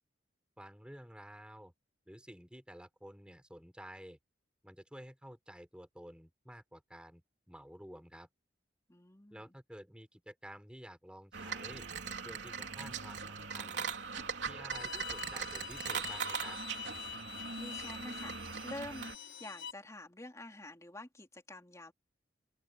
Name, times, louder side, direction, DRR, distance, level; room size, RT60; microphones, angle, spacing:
voice 1, 0.6-1.7 2.1-4.2 4.6-7.2 7.5-8.3 9.3-11.9 12.2-13.9 14.4-16.6, equal, 5° right, 4.8 m, -51 dB
voice 2, 8.9-9.5 17.6-19.1 19.4-21.9, left 1 dB, 15° left, 3.3 m, -48 dB
sound 1, 11.3-19.2, right 6 dB, 75° right, 3.2 m, -40 dB
Bowed string instrument, 14.7-19.7, left 8 dB, 85° left, 5.6 m, -46 dB
open air
head